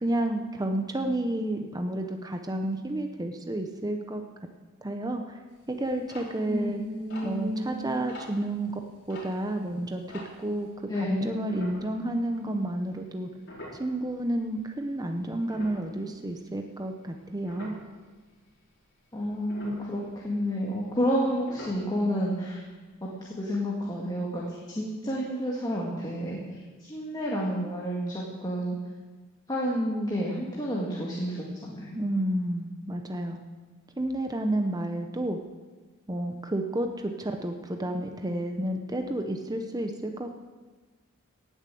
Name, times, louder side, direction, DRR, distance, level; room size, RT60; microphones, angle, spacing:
voice 1, 0.0-4.2 4.8-5.4 5.7-6.8 7.2-8.8 9.1-10.0 10.4-10.7 10.9-13.3 13.8-17.8 31.9-33.4 34.0-35.4 36.1-40.3, right 1 dB, 20° right, 5 dB, 0.8 m, -30 dB
sound 1, 5.5-10.7 11.5-12.5 12.8-13.0 13.4-14.7 15.1-18.0 18.4-18.9 19.2-21.2 21.5-22.3 22.6-22.7 22.9-23.1 23.5-23.6, left 1 dB, 55° left, 4.4 m, -46 dB
voice 2, 6.5-7.8 10.9-11.3 19.1-22.6 23.0-24.4 24.8-26.4 26.8-28.8 29.5-32.0, equal, 20° left, -4 dB, 2.0 m, -30 dB
17.5 x 7.3 x 7.7 m, 1.3 s
head